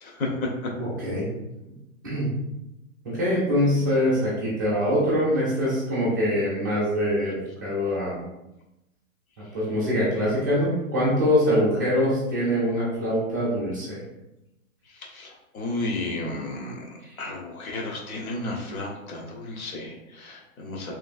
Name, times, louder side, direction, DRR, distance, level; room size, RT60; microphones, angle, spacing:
voice 1, 0.8-1.3 2.0-2.3 3.0-7.3 7.6-8.3 9.5-14.0 17.0-17.1, equal, 15° right, -8 dB, 0.4 m, -24 dB
voice 2, 15.5-16.8 17.2-20.9, left 2 dB, 85° left, -1 dB, 1.0 m, -32 dB
3.1 x 2.3 x 2.4 m, 0.91 s
hypercardioid pair, 160°, 42 cm